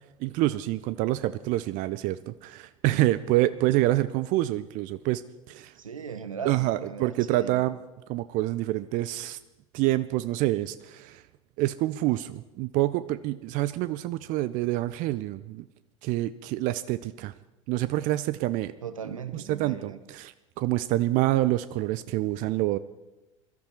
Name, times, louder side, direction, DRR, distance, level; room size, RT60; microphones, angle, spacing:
voice 1, 0.2-5.2 5.5-5.7 6.4-7.8 8.1-9.4 9.7-11.2 11.6-15.7 16.0-17.3 17.7-18.7 19.3-22.8, right 16 dB, 50° right, 15 dB, 0.6 m, -27 dB
voice 2, 2.9-3.2 3.7-3.9 5.8-7.6 18.8-20.0, right 7 dB, 85° right, 13 dB, 1.0 m, -38 dB
22.0 x 13.5 x 4.6 m, 1.0 s
hypercardioid pair, 75°, 17 cm